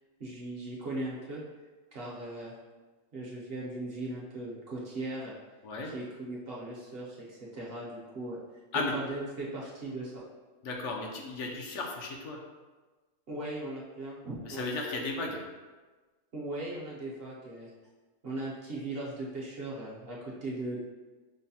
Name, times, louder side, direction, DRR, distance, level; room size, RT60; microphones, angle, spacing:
voice 1, 0.2-1.4 1.9-2.5 3.1-5.3 5.9-8.4 8.9-10.2 13.3-14.6 16.3-17.7 18.2-20.8, right 2 dB, 55° right, -5 dB, 0.8 m, -38 dB
voice 2, 10.6-12.4 14.4-15.4, left 3 dB, 70° left, 0 dB, 0.9 m, -35 dB
5.2 x 2.1 x 2.7 m, 1.3 s
omnidirectional pair, 1.3 m